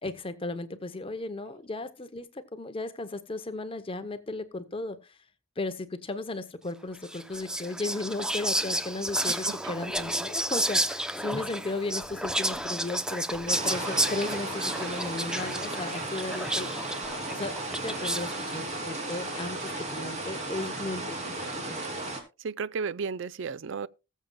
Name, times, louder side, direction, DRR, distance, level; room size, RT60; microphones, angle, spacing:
voice 1, 0.0-5.2 5.6-16.8 17.3-21.8, left 2 dB, 30° left, 0.7 m, -35 dB
Whispering, 7.0-18.5, right 1 dB, 5° right, 0.6 m, -31 dB
voice 2, 9.2-9.7 22.4-23.9, right 5 dB, 65° right, 0.5 m, -34 dB
sound 1, 13.5-22.2, right 2 dB, 35° right, 2.8 m, -35 dB
20.0 x 7.3 x 2.2 m
head